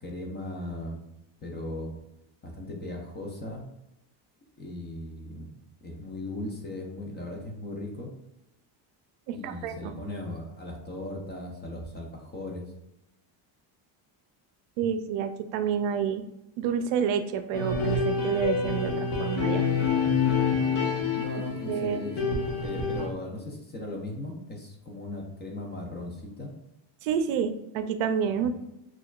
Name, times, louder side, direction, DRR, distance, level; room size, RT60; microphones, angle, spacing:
voice 1, 0.0-1.0 1.4-2.0 2.4-3.6 4.6-5.5 5.8-8.1 9.3-12.7 21.1-22.1 22.6-26.5 28.4-28.5, left 1 dB, 25° left, 0 dB, 0.4 m, -37 dB
voice 2, 9.3-9.9 14.8-16.2 16.6-19.7 21.3-22.0 27.0-28.5, right 7 dB, 80° right, 9 dB, 0.5 m, -29 dB
sound 1, 17.5-23.1, left 5 dB, 75° left, 0.9 m, -27 dB
6.3 x 2.4 x 2.3 m, 0.91 s
cardioid pair, 165°, 48 cm